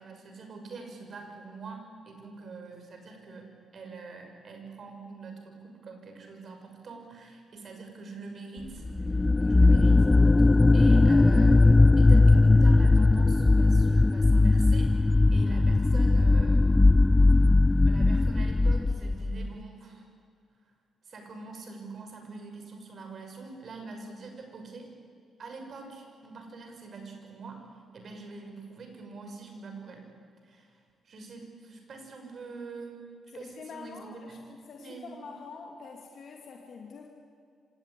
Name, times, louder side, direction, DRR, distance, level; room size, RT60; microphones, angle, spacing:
voice 1, 0.0-10.1 10.7-16.8 17.9-20.1 21.0-24.9 25.4-27.6 27.9-30.1 30.4-30.8 31.0-33.1 33.3-34.4 34.8-35.1, right 4 dB, 55° right, 4 dB, 6.2 m, -44 dB
sound 1, 8.9-19.5, left 2 dB, 25° left, 0.5 m, -19 dB
voice 2, 33.3-37.1, left 5 dB, 60° left, 2 dB, 2.5 m, -45 dB
25.5 x 18.0 x 10.0 m, 2.3 s
supercardioid pair, 55°, 0 cm